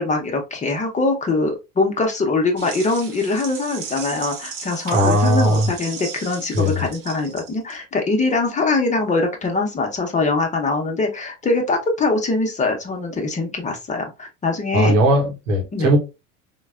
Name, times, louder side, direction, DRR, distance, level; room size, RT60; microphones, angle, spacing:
voice 1, 0.0-14.9 15.7-15.9, left 3 dB, 20° left, 0.7 m, -22 dB
sound 1, 2.6-7.8, right 6 dB, 55° right, 1.0 m, -36 dB
voice 2, 4.9-5.7 6.5-6.9 14.7-16.0, equal, 90° right, 1.0 m, -18 dB
3.8 x 2.2 x 2.3 m
hypercardioid pair, 85°, 37 cm